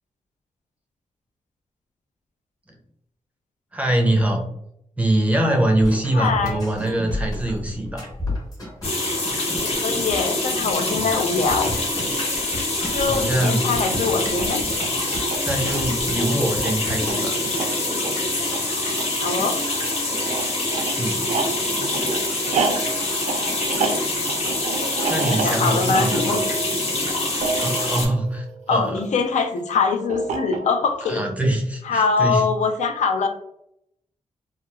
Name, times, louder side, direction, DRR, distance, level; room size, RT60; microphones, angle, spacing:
voice 1, 3.7-4.4 5.0-8.1 13.0-13.6 15.4-17.4 21.0-21.2 25.1-26.4 27.6-29.0 31.1-32.4, right 1 dB, 10° right, 2 dB, 0.4 m, -23 dB
sound 1, 5.8-17.2, left 1 dB, 30° left, 0.9 m, -33 dB
voice 2, 6.1-6.7 9.6-11.7 12.9-14.6 19.2-19.6 25.3-26.4 28.7-31.2 31.8-33.3, left 4 dB, 75° left, 6 dB, 0.4 m, -23 dB
sound 2, 8.8-28.1, left 2 dB, 60° left, 0.9 m, -25 dB
sound 3, 13.3-29.1 30.1-31.0, right 4 dB, 70° right, 0.4 m, -31 dB
2.9 x 2.3 x 2.2 m, 0.75 s
wide cardioid pair, 160°, 12 cm